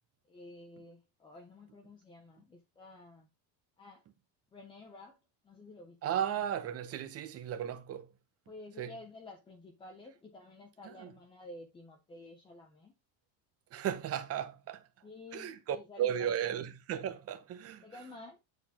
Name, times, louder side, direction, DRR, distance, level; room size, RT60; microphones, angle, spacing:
voice 1, 0.3-3.3 3.8-4.0 4.5-6.2 8.5-12.9 15.0-16.7 17.8-18.4, left 2 dB, 10° left, 0.4 m, -51 dB
voice 2, 6.0-8.1 8.8-8.9 10.8-11.1 13.7-14.8 15.3-17.8, right 9 dB, 30° right, 0.7 m, -35 dB
8.3 x 4.2 x 2.7 m
cardioid pair, 165°, 48 cm